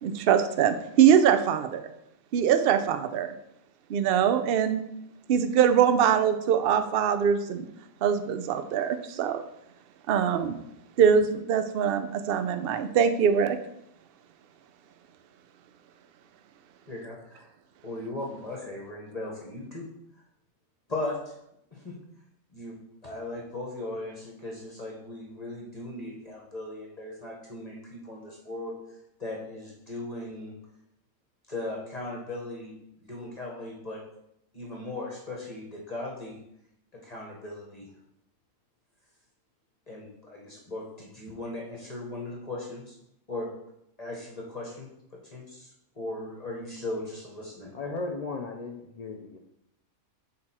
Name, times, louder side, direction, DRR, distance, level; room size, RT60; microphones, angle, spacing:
voice 1, 0.0-1.9 2.3-3.3 3.9-4.8 5.3-7.7 8.0-9.4 10.1-10.6 11.0-13.6, right 8 dB, 65° right, 9 dB, 0.6 m, -23 dB
voice 2, 16.9-17.5 17.8-19.9 20.9-21.3 21.7-21.9 22.5-28.8 29.2-30.5 31.5-34.0 34.5-36.4 36.9-37.9 39.9-43.0 43.3-43.5 44.0-45.7 45.9-47.7, left 2 dB, 30° left, -2 dB, 1.1 m, -38 dB
voice 3, 47.7-49.4, left 3 dB, 80° left, 1 dB, 0.3 m, -35 dB
6.4 x 4.1 x 4.3 m, 0.79 s
omnidirectional pair, 1.5 m